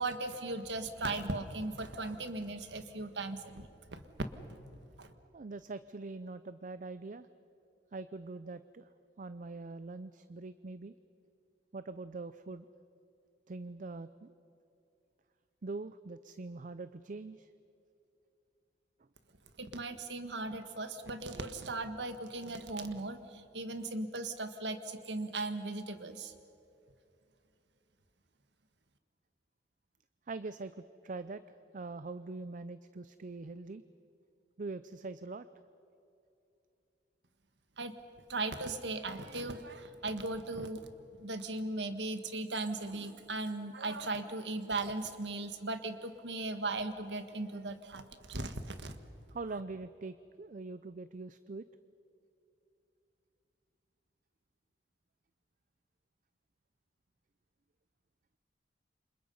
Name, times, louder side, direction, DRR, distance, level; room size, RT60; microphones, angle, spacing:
voice 1, 0.0-4.0 4.5-4.6 5.0-5.1 19.6-26.3 37.8-37.9 38.3-40.9 41.2-48.9, right 2 dB, 80° right, 9 dB, 1.6 m, -38 dB
voice 2, 5.3-7.3 7.9-8.9 9.2-10.9 11.7-12.7 13.5-14.3 15.6-17.5 30.3-31.4 31.7-33.8 34.6-35.5 49.3-51.6, right 3 dB, 50° right, 13 dB, 0.5 m, -43 dB
29.0 x 26.0 x 5.5 m, 2.8 s
head